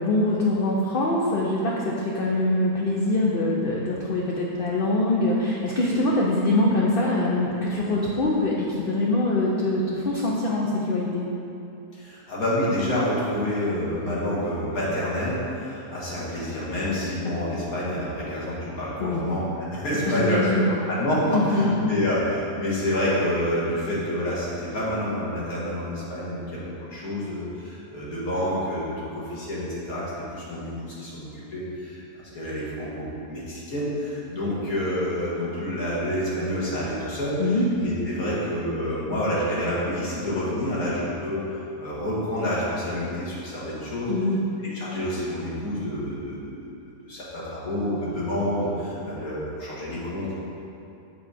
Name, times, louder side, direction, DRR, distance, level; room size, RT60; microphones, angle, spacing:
voice 1, 0.0-11.2 19.0-19.2 20.1-20.8 21.3-21.7 37.4-37.7 44.1-44.4, left 2 dB, 55° left, -4 dB, 0.7 m, -23 dB
voice 2, 11.9-20.4 20.9-30.0 30.3-44.1 44.6-46.7 47.1-50.3, equal, 70° left, -8 dB, 2.1 m, -28 dB
7.4 x 4.9 x 4.2 m, 2.8 s
omnidirectional pair, 1.6 m